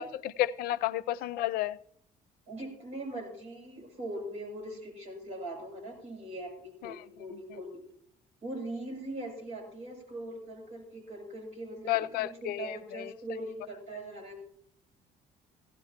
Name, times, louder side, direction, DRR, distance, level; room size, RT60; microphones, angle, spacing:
voice 1, 0.0-1.8 6.8-7.0 11.9-13.1, left 14 dB, 80° left, 0.6 m, -32 dB
voice 2, 2.5-7.8 8.4-14.4, right 1 dB, 45° right, 7.3 m, -41 dB
17.5 x 16.0 x 2.9 m
cardioid pair, 160°, 15 cm